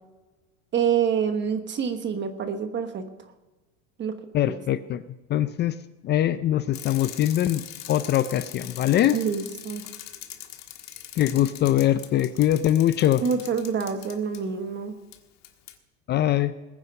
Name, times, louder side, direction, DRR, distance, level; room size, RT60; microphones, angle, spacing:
voice 1, 0.7-3.0 4.0-4.1 9.1-9.8 13.2-14.9, right 7 dB, 30° right, 8 dB, 1.2 m, -26 dB
voice 2, 4.3-5.0 5.3-5.7 6.0-7.6 7.9-9.2 11.2-13.2 16.1-16.5, left 12 dB, 30° left, 14 dB, 0.4 m, -22 dB
Bicycle, 6.7-14.4 15.1-15.2 15.4-15.7, left 11 dB, 45° left, 1.6 m, -41 dB
20.5 x 9.5 x 5.5 m, 1.2 s
supercardioid pair, 140°, 39 cm